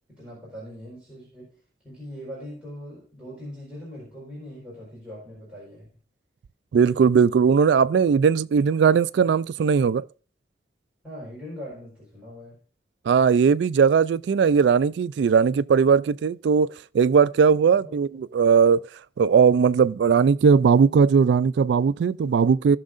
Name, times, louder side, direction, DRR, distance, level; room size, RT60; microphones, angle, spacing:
voice 1, 0.2-1.5 1.8-5.9 11.0-12.6 17.7-18.0, equal, 5° right, 4.5 m, -41 dB
voice 2, 6.7-10.0 13.1-18.8 19.2-22.8, right 6 dB, 75° right, 0.3 m, -19 dB
18.0 x 6.3 x 2.5 m
head